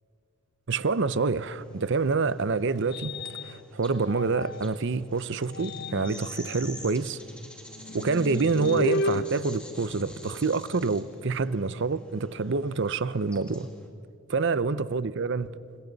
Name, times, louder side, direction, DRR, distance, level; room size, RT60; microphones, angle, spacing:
voice 1, 0.7-3.1 3.4-7.2 7.9-13.7 14.3-15.6, right 4 dB, 55° right, 16 dB, 0.6 m, -27 dB
sound 1, 0.9-13.9, equal, 5° left, 2.2 m, -49 dB
sound 2, 1.7-4.8 5.4-10.5, left 2 dB, 45° left, 0.5 m, -35 dB
28.5 x 26.5 x 4.0 m, 2.6 s
head